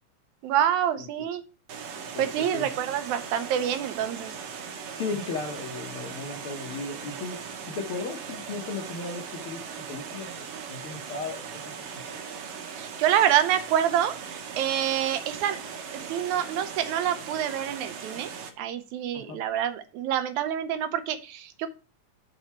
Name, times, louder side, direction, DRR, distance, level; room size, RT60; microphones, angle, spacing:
voice 1, 0.4-1.4 2.2-4.3 12.8-15.6 15.9-18.3 18.6-21.7, right 10 dB, 85° right, 10 dB, 2.1 m, -27 dB
voice 2, 1.0-1.3 2.1-2.7 4.9-12.2 19.1-19.4, left 4 dB, 65° left, 2 dB, 1.4 m, -36 dB
Water, 1.7-18.5, right 6 dB, 70° right, 2.0 m, -39 dB
7.3 x 3.9 x 4.4 m, 0.32 s
omnidirectional pair, 3.3 m